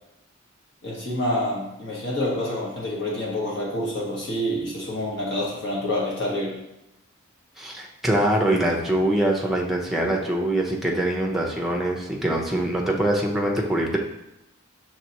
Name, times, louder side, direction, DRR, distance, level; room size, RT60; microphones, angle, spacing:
voice 1, 0.8-6.6, left 1 dB, 60° left, -4 dB, 1.5 m, -27 dB
voice 2, 7.6-14.0, right 1 dB, ahead, -1 dB, 0.7 m, -23 dB
5.7 x 3.2 x 2.9 m, 0.89 s
head